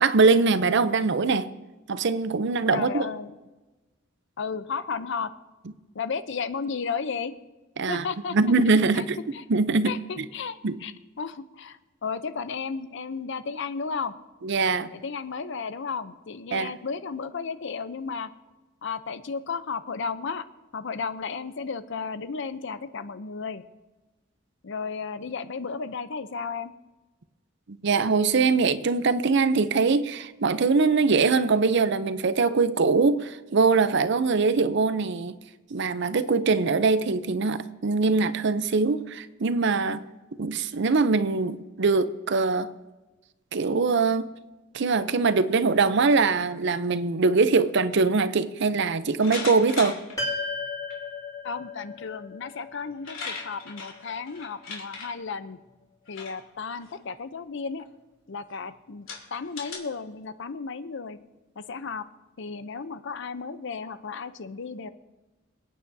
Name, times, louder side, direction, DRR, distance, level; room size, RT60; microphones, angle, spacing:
voice 1, 0.0-1.5 1.9-3.0 7.8-8.0 8.3-9.2 9.5-10.3 10.6-10.8 14.4-14.9 16.5-16.7 27.7-35.4 35.7-40.0 40.4-42.7 43.5-44.3 44.7-50.0, right 4 dB, 60° right, 0.6 m, -22 dB
voice 2, 2.7-3.3 4.4-5.3 5.9-7.3 7.9-8.4 8.9-9.0 9.3-9.4 9.8-14.1 14.9-18.3 18.8-20.4 20.7-23.6 24.6-26.7 51.4-55.6 56.1-57.8 58.3-61.2 61.6-62.1 62.4-64.9, left 5 dB, 65° left, 0.6 m, -34 dB
sound 1, 49.2-50.1 50.9-51.0 52.5-52.6 52.8-55.1 56.1-56.4 56.8-57.1 57.8-57.9 58.5-58.6 59.1-59.8, left 5 dB, 85° left, 3.2 m, -37 dB
sound 2, 50.2-54.6, left 3 dB, 15° left, 2.4 m, -36 dB
27.5 x 9.2 x 2.7 m
head